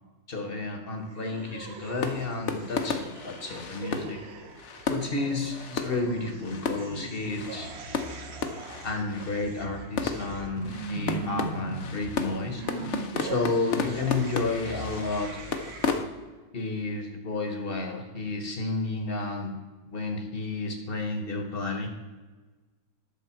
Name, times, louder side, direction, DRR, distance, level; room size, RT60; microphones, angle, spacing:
voice 1, 0.3-4.2 4.9-7.7 8.8-12.6 13.2-15.3 16.5-19.5 19.9-21.9, left 3 dB, 40° left, 4 dB, 1.0 m, -31 dB
sound 1, 1.0-16.0, right 4 dB, 50° right, 0.8 m, -40 dB
sound 2, 1.2-16.0, left 5 dB, 60° left, 0.7 m, -34 dB
11.0 x 6.7 x 4.4 m, 1.3 s
omnidirectional pair, 2.0 m